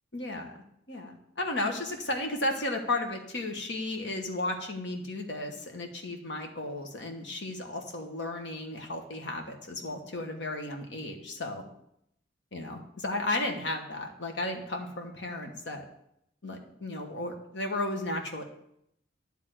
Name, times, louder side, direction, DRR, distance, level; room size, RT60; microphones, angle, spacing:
voice 1, 0.1-0.6 0.9-11.6 12.5-15.8 16.4-18.4, left 2 dB, 75° left, 3 dB, 1.3 m, -34 dB
10.0 x 3.6 x 6.2 m, 0.75 s
head